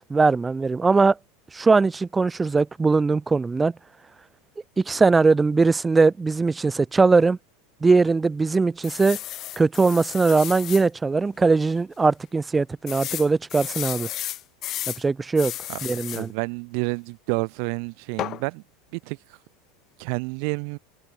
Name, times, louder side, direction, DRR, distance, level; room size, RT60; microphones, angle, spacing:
voice 1, 0.1-1.2 1.5-3.7 4.8-7.4 7.8-9.2 9.6-14.1 15.0-15.5 15.8-16.3, right 4 dB, 15° right, 6.1 m, -20 dB
sound 1, 8.8-10.9 11.4-11.5 11.8-11.9 12.9-15.0 15.4-16.3 18.2-18.4, left 13 dB, 45° left, 2.3 m, -33 dB
voice 2, 16.1-18.6 18.9-19.2 20.0-20.8, right 40 dB or more, 60° right, 4.5 m, -29 dB
hypercardioid pair, 90°, 0 cm